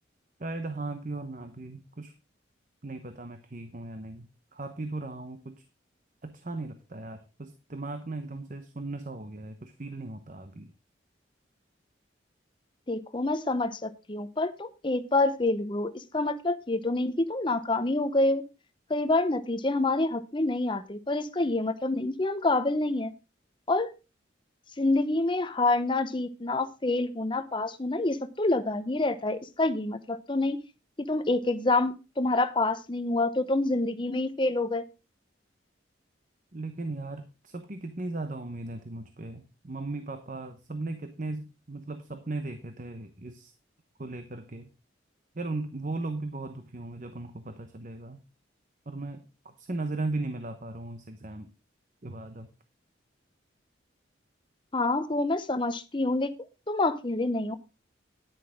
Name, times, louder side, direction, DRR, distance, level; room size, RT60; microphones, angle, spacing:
voice 1, 0.4-2.1 2.8-5.6 6.2-10.7 36.5-43.5 44.0-44.7 45.3-48.2 48.9-51.5 52.0-52.5, right 2 dB, 40° right, 8 dB, 1.0 m, -37 dB
voice 2, 12.9-18.4 18.9-23.1 23.7-23.9 24.8-30.6 31.1-34.8 54.7-56.3 56.7-57.6, left 2 dB, 25° left, 11 dB, 0.8 m, -27 dB
10.5 x 10.0 x 3.6 m, 0.29 s
head